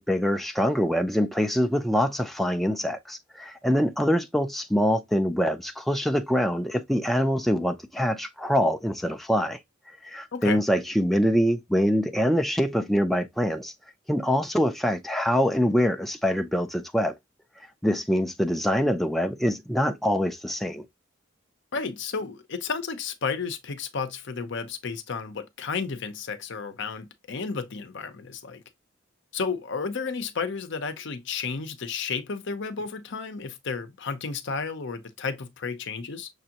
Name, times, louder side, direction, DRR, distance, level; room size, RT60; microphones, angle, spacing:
voice 1, 0.0-9.6 10.0-13.7 14.1-17.1 17.8-20.8, equal, ahead, 0.4 m, -24 dB
voice 2, 10.3-10.7 21.7-28.6 29.3-36.3, left 5 dB, 65° left, 0.7 m, -32 dB
6.5 x 2.6 x 2.8 m
head